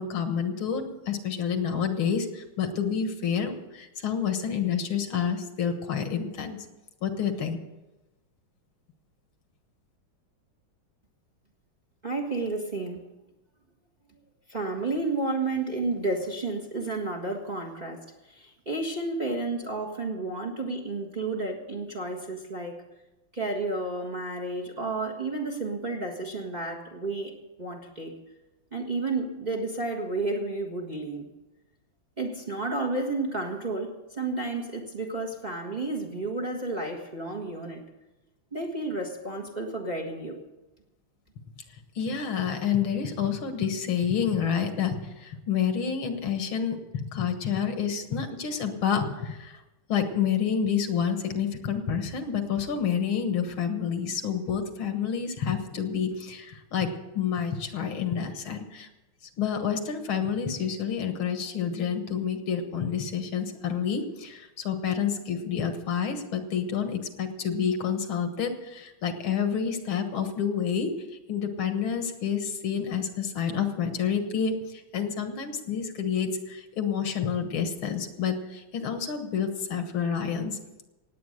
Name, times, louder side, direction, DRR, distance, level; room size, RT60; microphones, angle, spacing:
voice 1, 0.0-6.6 7.0-7.6 42.0-49.6 49.9-58.9 59.4-70.9 71.3-80.6, left 7 dB, 70° left, 7 dB, 2.1 m, -29 dB
voice 2, 12.0-13.1 14.5-22.8 23.3-27.3 27.6-28.1 28.7-31.3 32.2-37.8 38.5-40.4, right 2 dB, 25° right, 2 dB, 1.4 m, -31 dB
18.0 x 8.6 x 6.6 m, 1.0 s
omnidirectional pair, 2.4 m